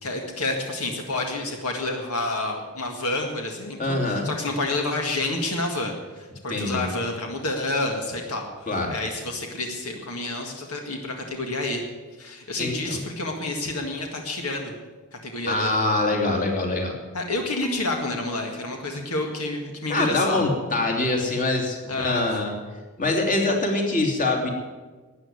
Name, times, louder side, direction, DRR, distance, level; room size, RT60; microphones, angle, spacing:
voice 1, 0.0-11.9 12.2-14.7 15.2-15.7 17.1-20.5 21.9-22.4, left 2 dB, 80° left, 3 dB, 1.9 m, -29 dB
voice 2, 3.8-4.4 6.5-6.8 8.7-8.9 12.6-13.0 15.5-16.9 19.9-22.5 23.0-24.5, left 2 dB, 40° left, 1 dB, 2.8 m, -24 dB
Marimba xylophone, 17.6-19.8, left 4 dB, 5° right, 0.9 m, -38 dB
13.0 x 9.3 x 9.5 m, 1.3 s
head